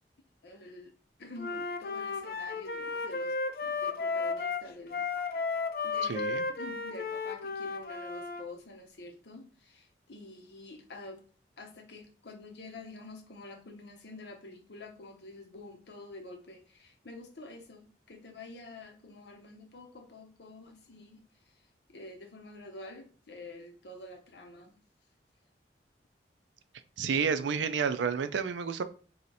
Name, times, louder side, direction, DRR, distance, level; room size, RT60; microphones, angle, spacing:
voice 1, 0.4-0.9 1.2-5.1 5.8-6.2 6.5-11.3 11.6-21.6 21.9-24.8, left 2 dB, 70° left, 3 dB, 0.9 m, -48 dB
Wind instrument woodwind instrument, 1.4-8.4, left 4 dB, 55° left, 0.4 m, -34 dB
voice 2, 6.1-6.4 27.0-28.8, right 6 dB, 90° right, 12 dB, 0.4 m, -30 dB
3.1 x 2.8 x 4.0 m, 0.39 s
head